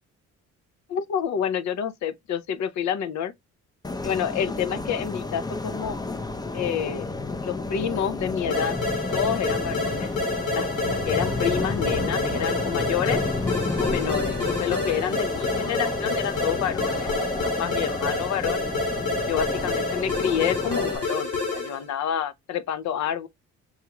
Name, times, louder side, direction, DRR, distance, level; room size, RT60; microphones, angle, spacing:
voice 1, 0.9-3.3 4.0-6.0 6.5-7.1 7.4-8.8 9.1-10.1 10.5-13.2 13.8-17.1 17.6-18.6 19.2-23.3, left 8 dB, 65° left, 0.6 m, -28 dB
sound 1, 3.8-21.0, left 3 dB, 15° left, 0.5 m, -31 dB
sound 2, 8.5-21.8, left 3 dB, 90° left, 2.1 m, -28 dB
5.6 x 2.3 x 2.8 m
cardioid pair, 90°, 30 cm